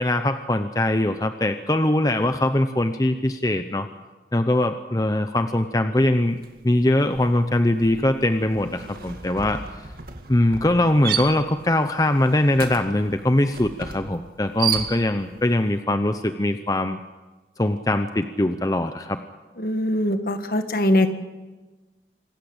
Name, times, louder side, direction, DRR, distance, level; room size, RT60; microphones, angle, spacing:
voice 1, 0.0-3.9 4.3-6.4 6.6-9.6 10.3-17.0 17.6-19.2, left 1 dB, 20° left, 8 dB, 0.7 m, -22 dB
sound 1, 6.4-6.7 6.9-15.4, right 7 dB, 55° right, 2.0 m, -33 dB
voice 2, 19.6-21.1, left 1 dB, 55° left, 7 dB, 1.8 m, -22 dB
26.5 x 14.5 x 8.8 m, 1.2 s
head